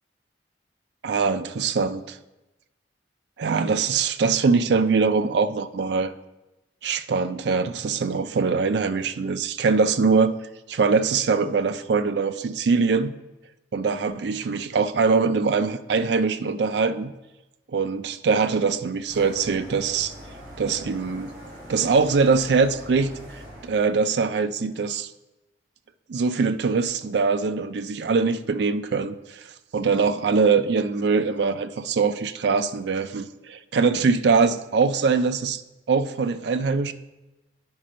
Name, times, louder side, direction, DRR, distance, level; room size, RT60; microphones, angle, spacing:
voice 1, 1.0-2.2 3.4-6.1 6.8-10.3 10.7-13.1 13.7-17.1 17.7-20.1 20.6-21.3 21.7-23.1 23.6-25.1 26.1-29.4 29.7-35.6 35.9-36.9, right 4 dB, 70° right, 11 dB, 0.4 m, -22 dB
sound 1, 19.1-23.8, equal, 55° right, 3.0 m, -43 dB
8.8 x 4.2 x 5.1 m, 1.0 s
head